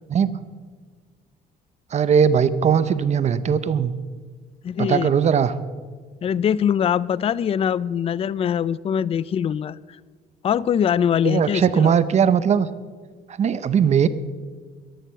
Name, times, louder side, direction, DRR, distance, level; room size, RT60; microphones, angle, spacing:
voice 1, 0.1-0.4 1.9-3.9 4.8-5.6 11.2-12.7 13.4-14.1, right 7 dB, 40° right, 15 dB, 0.8 m, -19 dB
voice 2, 4.6-5.1 6.2-9.8 10.4-12.0, left 8 dB, 35° left, 21 dB, 0.4 m, -22 dB
14.5 x 11.0 x 6.9 m, 1.5 s
cardioid pair, 110°, 17 cm